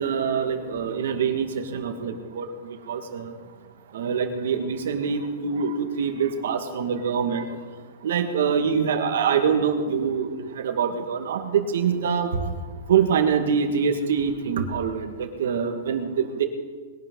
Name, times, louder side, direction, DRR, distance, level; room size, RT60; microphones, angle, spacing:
voice 1, 0.0-2.5 2.9-3.3 3.9-7.5 8.0-10.3 10.5-12.3 12.9-16.4, right 6 dB, 75° right, 7 dB, 1.8 m, -24 dB
21.0 x 11.0 x 3.9 m, 1.5 s
supercardioid pair, 165°, 0 cm